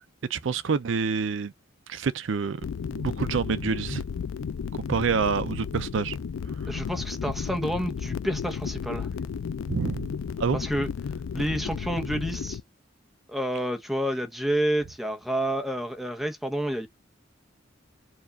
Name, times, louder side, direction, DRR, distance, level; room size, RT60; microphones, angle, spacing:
voice 1, 0.3-1.5 1.9-2.6 2.9-4.0 4.9-6.2 6.6-6.7 9.7-10.1 10.4-10.6, right 5 dB, 65° right, 0.5 m, -27 dB
sound 1, 2.6-12.6, left 6 dB, 85° left, 0.4 m, -33 dB
voice 2, 6.7-9.1 10.5-10.9 11.3-12.6 13.3-16.9, equal, ahead, 0.8 m, -29 dB
4.5 x 2.4 x 4.0 m
head